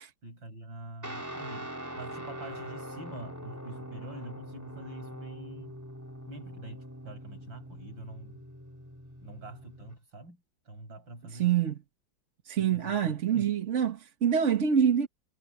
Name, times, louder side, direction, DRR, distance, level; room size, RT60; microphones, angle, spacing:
voice 1, 0.2-5.8 6.3-8.4 9.2-10.4 10.7-11.5 12.6-13.5, right 1 dB, 75° right, 8.8 m, -45 dB
Guitar, 1.0-9.9, equal, 10° right, 3.9 m, -43 dB
voice 2, 11.3-11.8 12.4-15.1, right 8 dB, 45° right, 1.3 m, -26 dB
omnidirectional pair, 2.1 m